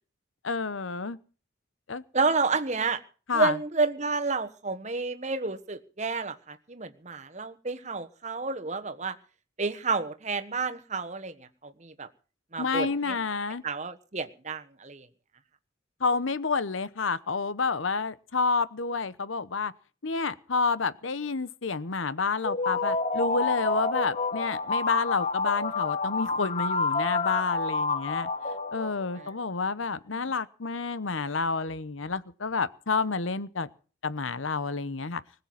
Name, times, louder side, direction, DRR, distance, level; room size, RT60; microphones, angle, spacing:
voice 1, 0.4-1.2 1.9-2.0 3.3-3.6 12.6-13.6 16.0-19.7 20.0-28.3 28.7-33.7 34.0-35.2, left 4 dB, 80° left, 0.9 m, -29 dB
voice 2, 2.1-3.0 3.3-9.1 9.6-12.1 12.5-13.2 13.6-15.1 29.2-29.3 30.1-30.2, right 4 dB, 35° right, 1.3 m, -30 dB
sound 1, 22.4-29.3, left 3 dB, 35° left, 1.1 m, -29 dB
20.5 x 6.9 x 9.4 m
head